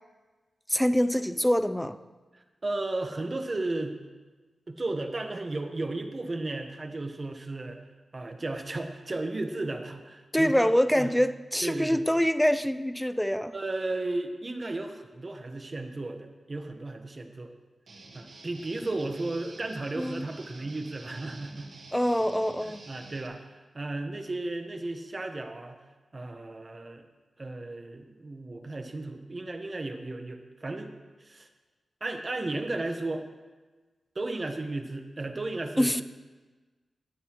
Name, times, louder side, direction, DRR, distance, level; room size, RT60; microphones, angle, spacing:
voice 1, 0.7-2.0 10.3-13.5 20.0-20.3 21.9-22.8 35.8-36.0, equal, 5° left, 12 dB, 0.5 m, -25 dB
voice 2, 2.3-4.0 4.7-7.8 8.1-11.1 11.6-12.0 13.5-17.5 18.1-21.7 22.6-25.8 26.1-27.0 27.4-30.9 31.2-31.5 32.0-33.3 34.1-36.0, right 2 dB, 35° right, 5 dB, 1.1 m, -34 dB
Guitar, 17.9-23.3, right 2 dB, 60° right, 1.5 m, -49 dB
20.0 x 7.8 x 3.1 m, 1.3 s
cardioid pair, 80°, 0 cm